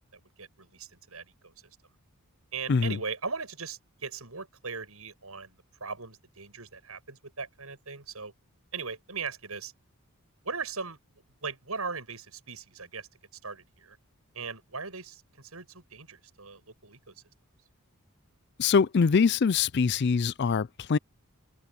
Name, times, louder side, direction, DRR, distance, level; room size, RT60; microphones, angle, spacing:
voice 1, 0.1-1.5 2.5-8.3 8.7-9.7 10.4-11.0 11.4-13.1 13.4-14.0 14.3-17.1, right 5 dB, 75° right, 7.9 m, -39 dB
voice 2, 18.6-21.0, left 5 dB, 50° left, 0.4 m, -23 dB
head